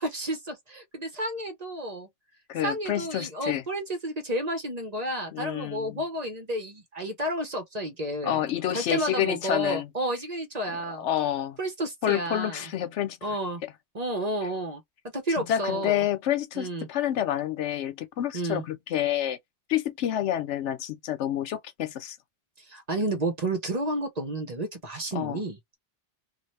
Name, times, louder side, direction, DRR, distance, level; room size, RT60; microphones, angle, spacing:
voice 1, 0.0-2.1 2.6-8.4 8.7-11.1 11.6-12.6 13.2-13.6 13.9-14.8 15.1-16.0 16.5-16.9 18.3-18.6 22.6-25.6, right 1 dB, 40° right, 0.9 m, -31 dB
voice 2, 2.5-3.6 5.3-6.0 8.2-9.9 10.7-11.6 12.0-13.2 13.6-13.7 15.5-19.4 19.7-22.2 25.1-25.4, left 11 dB, 75° left, 0.9 m, -28 dB
2.7 x 2.4 x 3.2 m
omnidirectional pair, 1.2 m